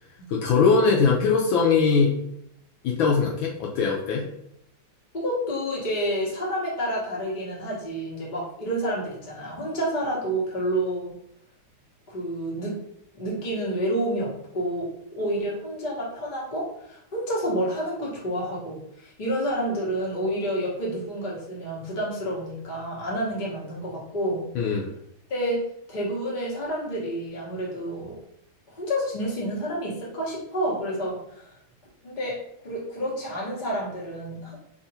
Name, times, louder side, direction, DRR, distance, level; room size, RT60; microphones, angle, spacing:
voice 1, 0.3-2.2 2.8-4.3 24.5-24.9, left 5 dB, 75° left, -2 dB, 1.3 m, -21 dB
voice 2, 5.1-11.1 12.1-12.8 13.1-24.5 25.3-25.6 25.9-28.1 28.7-31.5 32.0-34.6, equal, 30° left, -5 dB, 1.0 m, -29 dB
3.5 x 2.4 x 4.1 m, 0.75 s
omnidirectional pair, 2.3 m